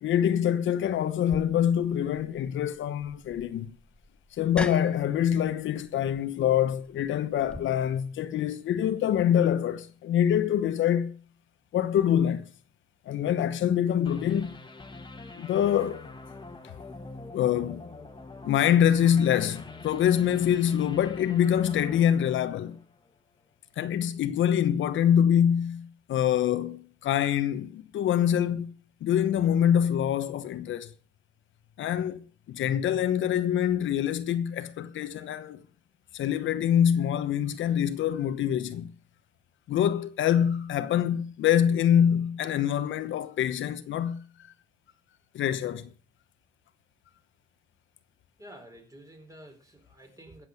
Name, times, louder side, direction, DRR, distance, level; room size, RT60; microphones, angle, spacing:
voice 1, 0.0-3.8 4.3-11.1 11.7-12.4 13.1-14.6 15.4-16.1 17.3-17.8 18.4-22.8 23.8-28.7 29.0-30.9 31.8-35.6 36.1-38.9 39.7-44.2 45.3-45.9, left 9 dB, 75° left, 1.1 m, -25 dB
sound 1, 1.3-7.6, left 1 dB, 5° left, 1.1 m, -43 dB
sound 2, 14.0-23.1, left 3 dB, 25° left, 1.8 m, -45 dB
voice 2, 48.4-50.5, right 1 dB, 15° right, 4.7 m, -50 dB
14.5 x 7.7 x 6.6 m
cardioid pair, 90°, 20 cm